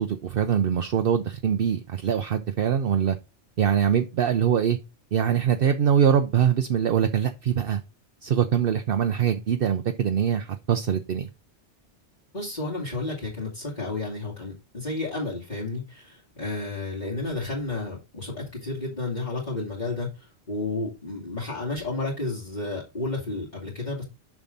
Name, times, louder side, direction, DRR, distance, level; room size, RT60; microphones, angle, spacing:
voice 1, 0.0-3.2 3.6-4.8 5.1-7.8 8.2-11.3, right 8 dB, 60° right, 0.8 m, -23 dB
voice 2, 12.3-24.0, left 2 dB, 40° left, 2.7 m, -32 dB
7.1 x 5.9 x 3.9 m
omnidirectional pair, 1.2 m